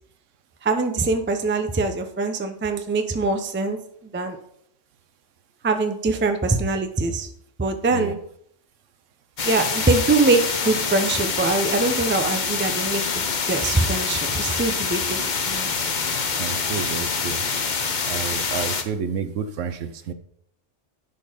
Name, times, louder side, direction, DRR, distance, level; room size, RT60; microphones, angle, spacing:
voice 1, 0.6-3.8 4.0-4.4 5.6-7.3 7.6-8.2 9.4-15.7, right 3 dB, 15° right, 7 dB, 0.4 m, -23 dB
sound 1, 9.4-18.8, left 5 dB, 40° left, 0.8 m, -25 dB
voice 2, 16.4-17.4 18.1-20.1, right 6 dB, 75° right, 11 dB, 1.1 m, -30 dB
10.5 x 4.3 x 5.0 m, 0.69 s
omnidirectional pair, 1.3 m